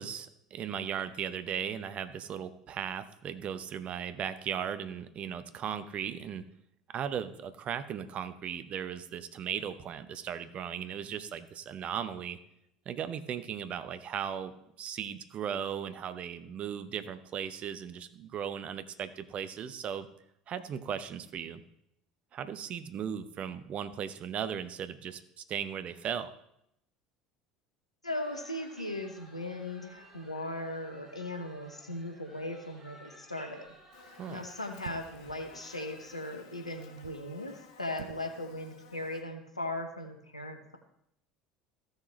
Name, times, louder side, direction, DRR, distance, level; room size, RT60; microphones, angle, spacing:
voice 1, 0.0-6.4 6.9-12.4 12.9-20.1 20.5-21.6 22.3-26.3 34.2-34.4, right 8 dB, 40° right, 12 dB, 0.8 m, -37 dB
voice 2, 28.0-33.7 34.3-40.8, left 1 dB, 90° left, 4 dB, 1.1 m, -38 dB
sound 1, 28.1-36.3, right 1 dB, 10° right, 3.4 m, -56 dB
sound 2, 33.6-34.0 34.8-35.3 36.8-37.3 37.9-38.3 38.6-38.7, right 10 dB, 70° right, 0.4 m, -47 dB
Buzz, 33.9-39.2, left 5 dB, 60° left, 1.2 m, -56 dB
15.0 x 6.5 x 3.2 m, 0.76 s
figure-of-eight pair, 65°, 3 cm